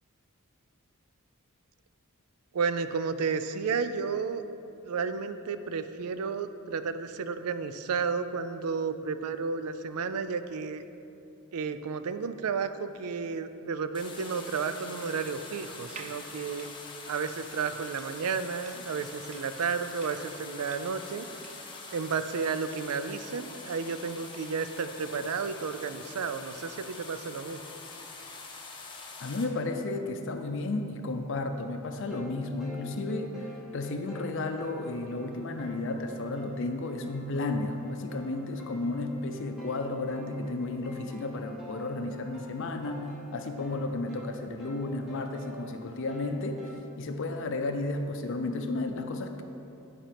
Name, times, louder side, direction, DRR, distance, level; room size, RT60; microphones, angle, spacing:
voice 1, 2.5-4.4 4.8-10.8 11.5-16.7 17.1-21.3 21.9-27.6, right 5 dB, 90° right, 11 dB, 0.4 m, -32 dB
sound 1, 13.9-29.4, left 3 dB, 20° left, 0.8 m, -45 dB
sound 2, 15.8-21.7, right 5 dB, 30° right, 0.4 m, -50 dB
voice 2, 29.2-46.7 47.0-49.4, left 2 dB, 60° left, 6 dB, 0.5 m, -33 dB
sound 3, 31.9-46.7, left 1 dB, ahead, 1.0 m, -48 dB
10.0 x 4.3 x 5.1 m, 2.8 s
head